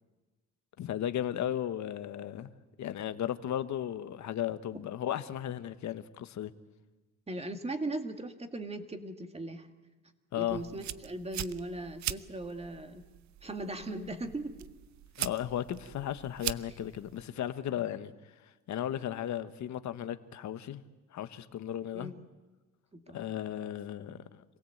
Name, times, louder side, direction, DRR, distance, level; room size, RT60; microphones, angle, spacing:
voice 1, 0.8-2.5 2.8-6.5 10.3-10.6 15.2-18.1 18.7-20.8 21.1-22.1 23.1-24.4, left 11 dB, 70° left, 11 dB, 1.2 m, -35 dB
voice 2, 7.3-9.7 10.4-13.0 13.4-14.7 21.9-22.2 22.9-23.2, right 2 dB, 20° right, 6 dB, 2.0 m, -38 dB
sound 1, 10.5-17.3, right 12 dB, 65° right, 0.7 m, -42 dB
26.5 x 17.0 x 7.9 m, 1.2 s
cardioid pair, 90°, 30 cm